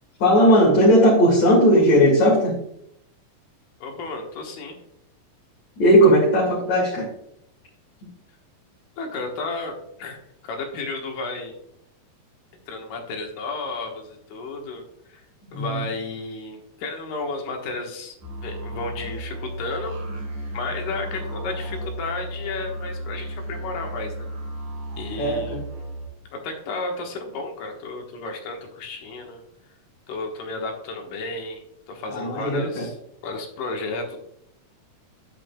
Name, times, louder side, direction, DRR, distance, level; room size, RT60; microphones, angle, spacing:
voice 1, 0.2-2.5 5.8-7.1 15.5-15.8 25.2-25.6 32.1-32.9, equal, 60° left, -6 dB, 3.2 m, -17 dB
voice 2, 3.8-4.8 9.0-11.5 12.7-14.8 15.1-15.2 15.5-18.2 18.4-19.9 20.5-24.1 25.0-25.6 26.3-29.4 30.1-32.9 33.2-34.2, left 3 dB, 75° left, 2 dB, 2.9 m, -32 dB
sound 1, 18.2-26.1, right 1 dB, 70° right, 4.3 m, -34 dB
9.8 x 8.2 x 2.3 m, 0.75 s
omnidirectional pair, 3.8 m